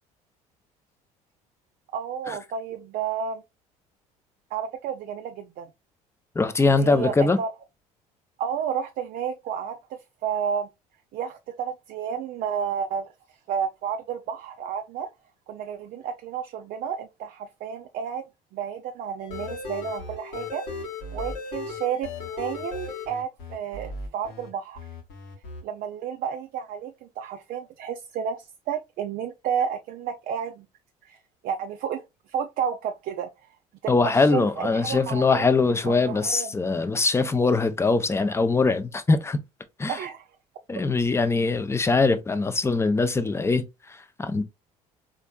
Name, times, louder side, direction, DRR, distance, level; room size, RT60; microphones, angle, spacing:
voice 1, 1.9-3.4 4.5-5.7 6.7-7.5 8.4-10.7 11.1-15.1 15.5-18.2 18.5-20.6 21.1-24.9 25.6-30.7 31.0-31.2 31.4-32.0 32.3-33.3 33.8-35.5 35.8-36.5 39.9-40.2, right 8 dB, 50° right, 0.4 m, -31 dB
voice 2, 6.3-7.4 33.9-39.4 39.8-40.0 40.7-44.4, left 3 dB, 15° left, 0.5 m, -22 dB
sound 1, 19.2-24.5 24.8-25.6, left 3 dB, 65° left, 1.1 m, -36 dB
4.2 x 2.5 x 2.2 m
figure-of-eight pair, 60°, 20 cm